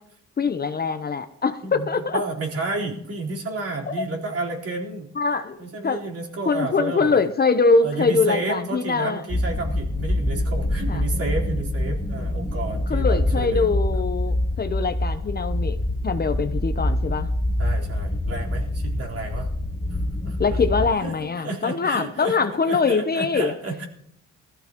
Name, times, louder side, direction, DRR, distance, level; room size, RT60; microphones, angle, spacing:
voice 1, 0.4-2.2 3.9-4.0 5.2-5.6 5.8-6.0 6.5-9.2 10.9-11.0 12.9-15.8 16.0-17.3 20.4-23.5, left 4 dB, 30° left, 9 dB, 0.8 m, -23 dB
voice 2, 2.1-5.1 5.6-7.2 7.8-13.7 17.6-19.5 20.2-23.9, right 3 dB, 55° right, -2 dB, 4.1 m, -31 dB
sound 1, 9.3-20.9, left 1 dB, 15° left, 1.3 m, -25 dB
20.0 x 14.5 x 3.0 m, 0.75 s
cardioid pair, 90°, 30 cm